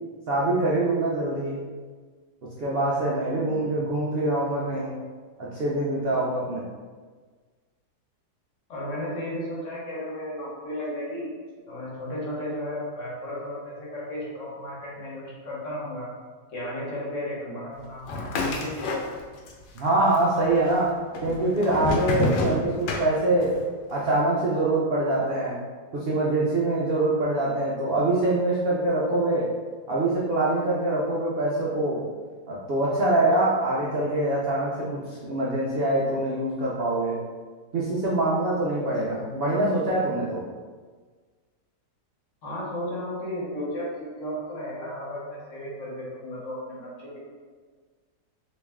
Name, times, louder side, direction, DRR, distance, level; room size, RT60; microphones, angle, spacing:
voice 1, 0.3-1.6 2.6-4.9 5.4-6.6 19.7-23.5 23.9-25.6 25.9-29.5 29.9-32.0 32.5-37.2 37.7-40.4, right 2 dB, 80° right, -6 dB, 0.5 m, -24 dB
voice 2, 3.5-3.8 8.7-11.3 11.7-16.1 16.5-18.8 42.4-47.2, left 1 dB, 55° left, -6 dB, 1.2 m, -34 dB
sound 1, 18.1-19.5 19.8-20.5 21.1-23.6, left 2 dB, 85° left, 1.2 m, -28 dB
3.1 x 3.0 x 3.5 m, 1.5 s
omnidirectional pair, 1.7 m